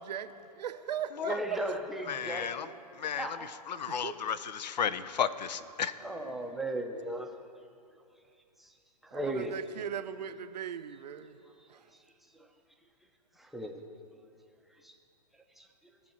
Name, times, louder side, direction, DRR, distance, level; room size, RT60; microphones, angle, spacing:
voice 1, 0.0-1.6 3.9-4.2 6.0-6.6 9.1-11.4 11.7-11.8, right 9 dB, 75° right, 11 dB, 0.6 m, -39 dB
voice 2, 1.2-2.6 3.2-3.5 6.0-7.3 9.0-9.6 13.4-13.8 14.8-14.9 15.6-15.7, right 1 dB, ahead, 2 dB, 0.5 m, -36 dB
voice 3, 2.1-2.7 3.0-5.9, left 8 dB, 85° left, 14 dB, 0.6 m, -33 dB
18.0 x 6.3 x 4.3 m, 2.4 s
hypercardioid pair, 140°, 21 cm